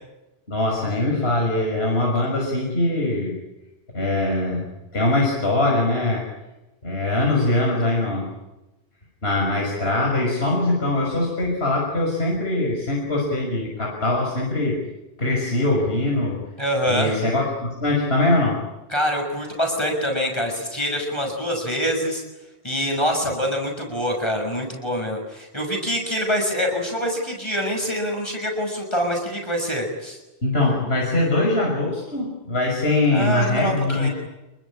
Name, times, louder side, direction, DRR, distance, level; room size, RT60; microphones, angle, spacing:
voice 1, 0.5-3.3 3.9-4.7 4.9-6.2 6.8-8.3 9.2-14.8 15.2-16.5 16.9-18.6 30.4-34.1, left 2 dB, 75° left, -2 dB, 6.5 m, -22 dB
voice 2, 16.6-17.1 18.9-22.2 22.6-30.2 33.1-34.1, equal, 25° left, 1 dB, 6.4 m, -25 dB
28.0 x 23.5 x 8.9 m, 1.0 s
omnidirectional pair, 1.0 m